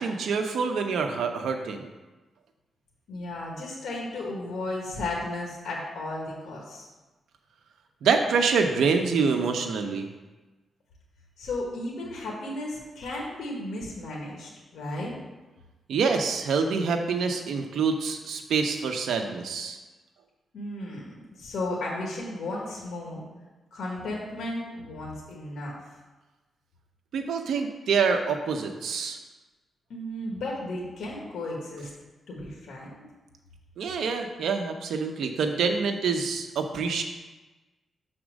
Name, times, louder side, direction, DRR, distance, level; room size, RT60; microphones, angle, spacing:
voice 1, 0.0-1.9 8.0-10.1 15.9-19.8 27.1-29.2 33.8-37.0, right 5 dB, 90° right, 5 dB, 0.8 m, -26 dB
voice 2, 3.1-6.9 11.4-15.1 20.5-23.3 23.7-25.7 29.9-31.9 32.3-32.9, left 2 dB, 75° left, -2 dB, 1.5 m, -34 dB
6.1 x 4.4 x 6.3 m, 1.2 s
wide cardioid pair, 130°, 0 cm